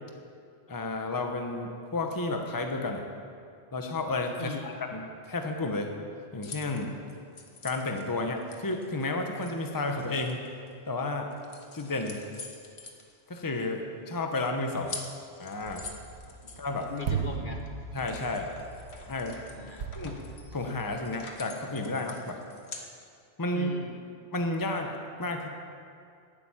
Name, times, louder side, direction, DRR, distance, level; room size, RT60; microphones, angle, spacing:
voice 1, 0.7-3.0 3.7-6.0 6.3-7.0 7.6-10.4 10.8-11.3 11.7-12.3 13.3-15.0 15.4-15.9 16.6-16.9 17.9-18.5 19.1-19.4 19.9-20.2 20.5-22.4 23.4-23.7 24.3-25.5, left 2 dB, 20° left, 3 dB, 1.0 m, -32 dB
voice 2, 4.4-4.7 16.4-16.6 16.9-17.6 19.5-19.9 23.5-24.0, left 5 dB, 50° left, 3 dB, 1.2 m, -39 dB
sound 1, 6.4-10.9 11.3-13.8 14.1-14.2 14.4-22.9, left 3 dB, 75° left, 1.6 m, -47 dB
sound 2, 15.6-21.0, right 6 dB, 85° right, 1.1 m, -38 dB
12.5 x 8.9 x 8.8 m, 2.4 s
omnidirectional pair, 1.1 m